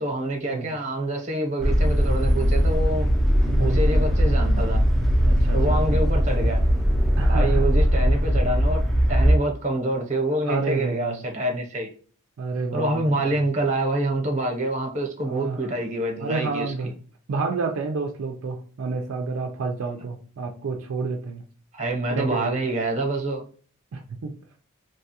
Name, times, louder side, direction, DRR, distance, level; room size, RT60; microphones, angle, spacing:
voice 1, 0.0-3.1 3.6-4.8 5.5-6.6 7.3-8.8 9.1-11.9 12.7-16.7 21.7-23.4, right 1 dB, 35° right, 2 dB, 0.8 m, -26 dB
sound 1, 1.6-9.3, equal, ahead, 0.5 m, -20 dB
voice 2, 3.5-4.1 5.2-6.0 7.2-7.7 10.4-11.3 12.4-13.4 15.2-15.7 16.2-16.9 17.3-21.4 22.1-22.5 23.9-24.4, right 4 dB, 65° right, 3 dB, 0.4 m, -30 dB
2.9 x 2.3 x 2.7 m, 0.41 s
head